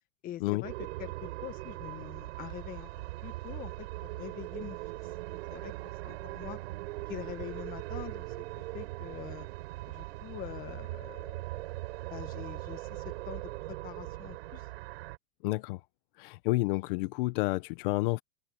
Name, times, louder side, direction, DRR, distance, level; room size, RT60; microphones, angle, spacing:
voice 1, 0.2-2.9 3.2-6.6 7.1-9.5 9.9-11.4 11.9-14.7, left 12 dB, 25° left, 1.1 m, -45 dB
sound 1, 0.6-15.2, right 19 dB, 65° right, 4.1 m, -40 dB
voice 2, 15.4-15.8 16.2-18.2, left 21 dB, 50° left, 1.0 m, -30 dB
open air
supercardioid pair, 155°, 34 cm